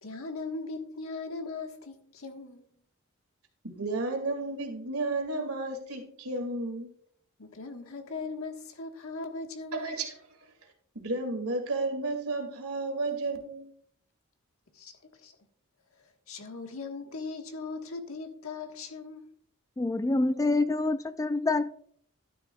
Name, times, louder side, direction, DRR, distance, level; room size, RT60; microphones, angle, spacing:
voice 1, 0.0-2.6 7.4-10.0 14.7-15.3 16.0-19.3, left 3 dB, 75° left, 1.4 m, -39 dB
voice 2, 3.6-6.9 9.7-10.1 10.9-13.7, right 2 dB, 85° right, 2.3 m, -32 dB
voice 3, 19.8-21.7, left 2 dB, 15° left, 0.3 m, -26 dB
11.5 x 9.9 x 2.3 m
head